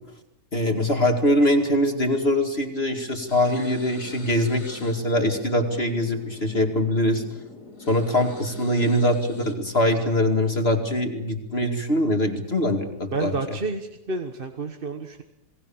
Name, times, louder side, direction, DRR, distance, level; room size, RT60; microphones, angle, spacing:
voice 1, 0.5-7.2 7.9-13.3, left 1 dB, 35° left, 4 dB, 2.5 m, -23 dB
sound 1, 3.3-9.5, left 2 dB, 70° left, 3.7 m, -44 dB
voice 2, 13.1-15.2, right 3 dB, 35° right, 6 dB, 1.3 m, -30 dB
28.0 x 19.0 x 7.1 m, 0.89 s
omnidirectional pair, 1.8 m